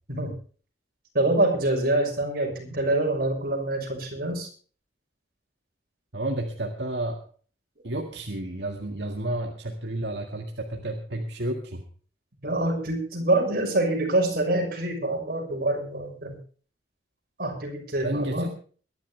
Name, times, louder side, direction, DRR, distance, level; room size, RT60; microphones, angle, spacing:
voice 1, 1.1-4.5 12.4-16.4 17.4-18.5, right 2 dB, 55° right, 2 dB, 6.3 m, -25 dB
voice 2, 6.1-7.2 7.8-11.8 18.0-18.5, right 1 dB, 80° right, 3 dB, 1.9 m, -31 dB
22.5 x 12.0 x 3.3 m, 0.41 s
head